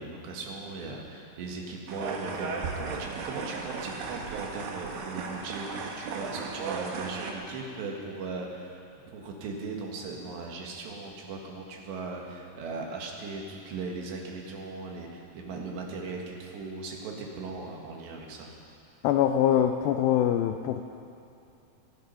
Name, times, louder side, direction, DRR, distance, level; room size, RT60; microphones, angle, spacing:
voice 1, 0.0-8.8 9.1-18.5, right 3 dB, 90° right, 0 dB, 4.0 m, -38 dB
sound 1, 1.9-7.3, right 4 dB, 65° right, 2.7 m, -36 dB
voice 2, 19.0-20.8, left 10 dB, 85° left, 6 dB, 2.1 m, -23 dB
25.0 x 9.4 x 5.6 m, 2.6 s
omnidirectional pair, 4.8 m